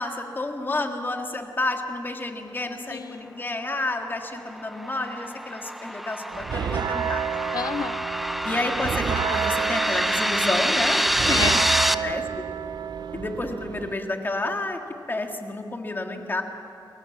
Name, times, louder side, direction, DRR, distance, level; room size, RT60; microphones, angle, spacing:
voice 1, 0.0-7.2 8.4-11.4 12.0-12.4 13.1-14.8 15.1-16.4, left 2 dB, 25° left, 4 dB, 2.0 m, -30 dB
voice 2, 2.9-3.5 7.5-8.1 11.3-12.4, left 6 dB, 55° left, 17 dB, 0.6 m, -32 dB
sound 1, 4.2-11.9, equal, ahead, 0.6 m, -26 dB
sound 2, 6.3-13.9, right 8 dB, 65° right, 0.6 m, -30 dB
29.5 x 22.0 x 7.4 m, 2.7 s
wide cardioid pair, 170°, 8 cm